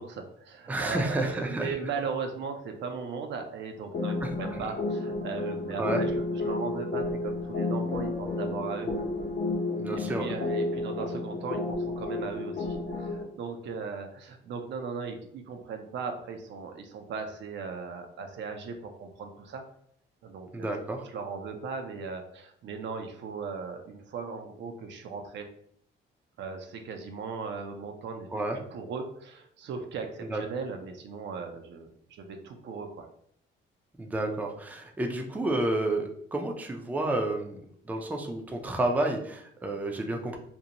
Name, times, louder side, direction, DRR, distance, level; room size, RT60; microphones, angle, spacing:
voice 1, 0.0-9.0 9.9-19.6 20.2-20.7 21.0-25.5 26.4-33.1, right 5 dB, 65° right, 5 dB, 0.5 m, -38 dB
voice 2, 0.7-1.7 4.2-4.3 5.8-6.0 9.8-10.3 20.5-21.0 28.3-28.6 30.3-30.4 34.0-37.6 37.9-40.4, right 2 dB, 10° right, 2 dB, 0.4 m, -30 dB
sound 1, 3.9-13.2, left 2 dB, 60° left, 0.7 m, -31 dB
2.6 x 2.1 x 2.8 m, 0.66 s
cardioid pair, 90°, 20 cm